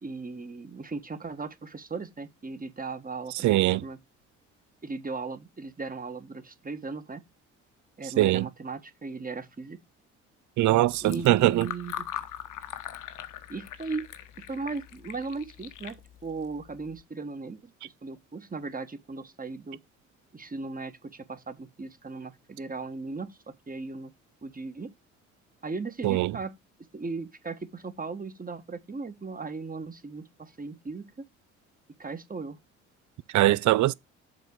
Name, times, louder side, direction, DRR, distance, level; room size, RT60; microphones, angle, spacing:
voice 1, 0.0-4.0 4.8-7.2 8.0-9.8 11.0-12.1 13.5-14.1 14.5-16.0 16.2-19.8 20.3-24.1 24.4-24.9 25.6-26.6 26.9-31.3 32.0-32.6, right 4 dB, 25° right, 1.5 m, -37 dB
voice 2, 3.4-3.8 8.2-8.4 10.6-11.7 26.0-26.3 33.3-33.9, right 16 dB, 55° right, 0.6 m, -21 dB
Fill (with liquid), 10.8-17.0, left 11 dB, 55° left, 1.1 m, -41 dB
7.4 x 4.6 x 5.3 m
hypercardioid pair, 50°, 37 cm